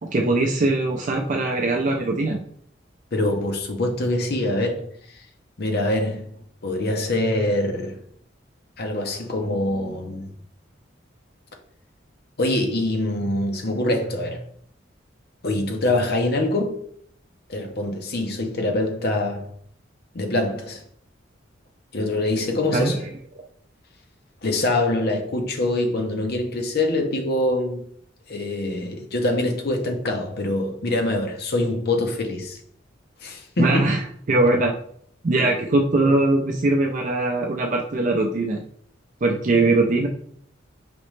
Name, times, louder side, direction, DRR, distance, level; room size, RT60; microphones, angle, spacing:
voice 1, 0.0-2.4 22.7-23.1 33.6-34.0 34.3-34.7 35.2-38.6 39.2-40.1, right 2 dB, 40° right, 0.5 m, -21 dB
voice 2, 3.1-4.9 5.6-6.3 6.6-8.0 8.8-10.3 12.4-14.4 15.4-16.8 17.5-19.5 20.1-20.8 21.9-23.0 24.4-27.9 28.3-32.6 33.2-33.9 35.4-35.5, left 1 dB, 55° left, 0.8 m, -24 dB
5.1 x 3.0 x 3.2 m
head